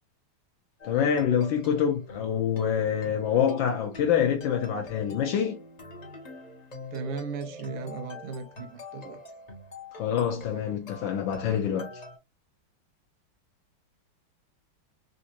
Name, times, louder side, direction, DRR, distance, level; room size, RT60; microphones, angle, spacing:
voice 1, 0.8-5.5 9.9-11.9, left 8 dB, 75° left, 1.3 m, -26 dB
sound 1, 0.8-12.2, left 2 dB, 40° left, 0.5 m, -45 dB
voice 2, 6.9-9.2, right 5 dB, 85° right, 1.6 m, -36 dB
4.2 x 2.6 x 2.8 m
omnidirectional pair, 2.3 m